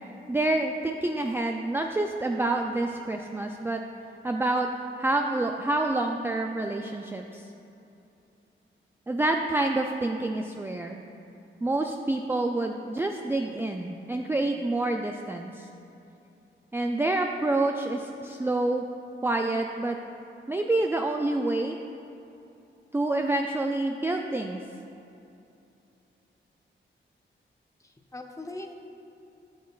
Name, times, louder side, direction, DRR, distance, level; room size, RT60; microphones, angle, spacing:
voice 1, 0.3-3.8 4.2-4.7 5.0-7.4 9.1-11.0 11.6-15.7 16.7-18.9 19.2-20.0 20.5-21.8 22.9-24.6, right 2 dB, 10° right, 3 dB, 0.3 m, -27 dB
voice 2, 27.8-28.7, left 2 dB, 15° left, 3 dB, 0.7 m, -41 dB
13.0 x 6.4 x 2.4 m, 2.7 s
cardioid pair, 85°, 20 cm